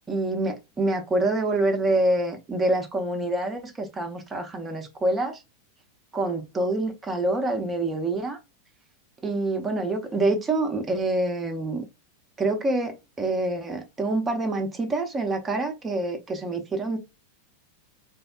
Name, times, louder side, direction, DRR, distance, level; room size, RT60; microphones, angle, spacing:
voice 1, 0.1-5.4 6.1-8.4 9.2-11.8 12.4-17.0, right 2 dB, 15° right, 0.7 m, -26 dB
3.4 x 2.1 x 2.3 m
figure-of-eight pair, 90°, 0 cm